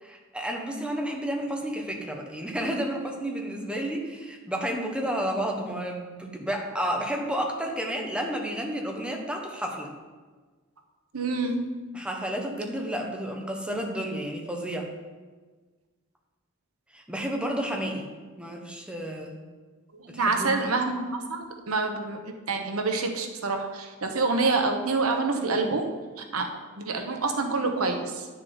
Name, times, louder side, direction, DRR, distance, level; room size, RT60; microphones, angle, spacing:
voice 1, 0.0-9.9 11.9-14.9 16.9-18.1 18.4-19.3 20.1-20.6, right 1 dB, 5° right, 1 dB, 1.2 m, -31 dB
voice 2, 11.1-11.8 20.0-25.9 26.2-26.5 26.8-28.3, right 3 dB, 80° right, 4 dB, 1.1 m, -27 dB
11.0 x 6.6 x 4.0 m, 1.4 s
head